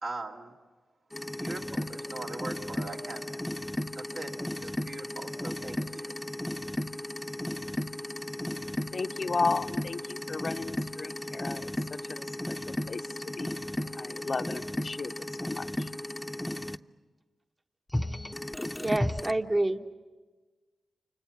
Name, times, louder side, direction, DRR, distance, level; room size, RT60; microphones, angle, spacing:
voice 1, 0.0-0.5 1.4-3.2 3.9-6.1, right 3 dB, 70° right, -1 dB, 2.8 m, -41 dB
sound 1, 1.1-16.8 17.9-19.3, left 1 dB, 15° left, 0.8 m, -35 dB
voice 2, 8.9-13.6 13.8-15.9, left 4 dB, 55° left, 9 dB, 0.7 m, -35 dB
voice 3, 18.8-19.9, right 2 dB, 30° right, 6 dB, 1.2 m, -28 dB
29.0 x 26.0 x 7.3 m, 1.3 s
cardioid pair, 45°, 0 cm